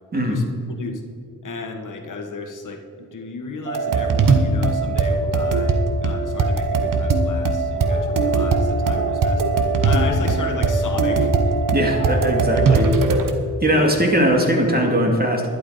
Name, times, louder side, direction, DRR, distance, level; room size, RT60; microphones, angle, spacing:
voice 1, 0.1-0.4 0.8-1.0 1.4-9.4 9.8-11.6 12.7-12.9 13.7-14.0, left 3 dB, 70° left, 4 dB, 1.5 m, -33 dB
sound 1, 3.7-13.3, right 3 dB, 75° right, 1.1 m, -20 dB
sound 2, 7.7-8.3 8.8-9.2 9.8-10.3 10.9-11.3 11.7-12.3, left 3 dB, 40° left, 1.9 m, -35 dB
voice 2, 11.7-12.9 13.6-15.5, equal, 30° right, 1 dB, 2.5 m, -19 dB
11.5 x 11.0 x 5.0 m, 2.4 s
cardioid pair, 60°, 33 cm